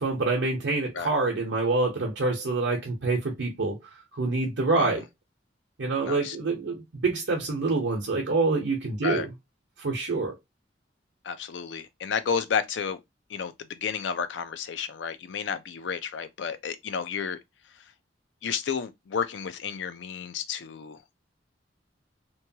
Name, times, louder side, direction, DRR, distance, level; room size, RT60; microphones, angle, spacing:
voice 1, 0.0-5.1 5.8-9.3 9.8-10.4, right 3 dB, 90° right, 0.8 m, -26 dB
voice 2, 6.0-6.4 9.0-9.3 11.2-13.0 13.3-17.4 18.4-21.0, left 6 dB, 75° left, 0.4 m, -31 dB
3.0 x 2.2 x 2.7 m
head